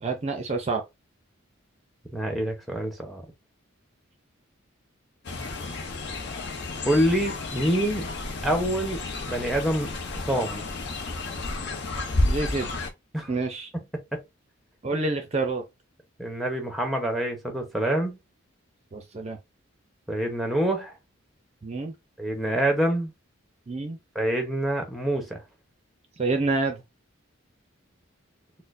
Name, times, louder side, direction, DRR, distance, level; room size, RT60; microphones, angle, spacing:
voice 1, 0.0-0.8 12.3-12.7 13.3-13.7 14.8-15.6 18.9-19.4 21.6-21.9 23.7-24.0 26.2-26.8, right 3 dB, 30° right, 0.4 m, -27 dB
voice 2, 2.1-3.2 6.8-8.1 8.4-10.6 13.1-13.3 16.2-18.2 20.1-20.9 22.2-23.1 24.1-25.4, right 1 dB, ahead, 0.7 m, -26 dB
Fowl, 5.2-12.9, left 2 dB, 55° left, 0.6 m, -31 dB
4.2 x 2.1 x 2.5 m
head